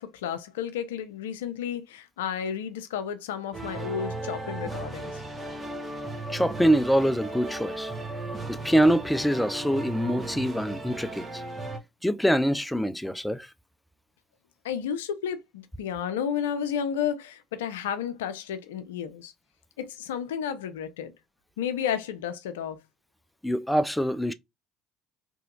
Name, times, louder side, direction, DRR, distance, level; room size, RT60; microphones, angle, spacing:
voice 1, 0.0-5.2 14.6-19.3 19.8-21.1 21.6-22.8, left 8 dB, 85° left, 0.5 m, -32 dB
sound 1, 3.5-11.8, right 2 dB, 20° right, 1.0 m, -36 dB
voice 2, 6.3-7.9 8.5-11.4 12.0-13.5 23.4-24.3, equal, 5° left, 0.3 m, -24 dB
2.9 x 2.7 x 2.3 m
hypercardioid pair, 70°, 0 cm